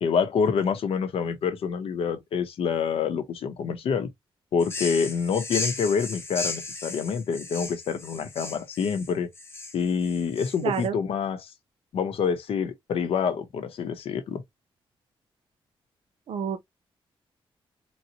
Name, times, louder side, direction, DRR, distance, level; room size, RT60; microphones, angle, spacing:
voice 1, 0.0-4.1 4.5-9.3 9.7-11.5 11.9-14.4, left 6 dB, 85° left, 0.7 m, -27 dB
sound 1, 4.6-10.9, left 3 dB, 25° left, 0.7 m, -35 dB
voice 2, 10.6-11.0 16.3-16.7, right 7 dB, 85° right, 0.6 m, -29 dB
3.9 x 2.0 x 2.7 m
wide cardioid pair, 125°, 9 cm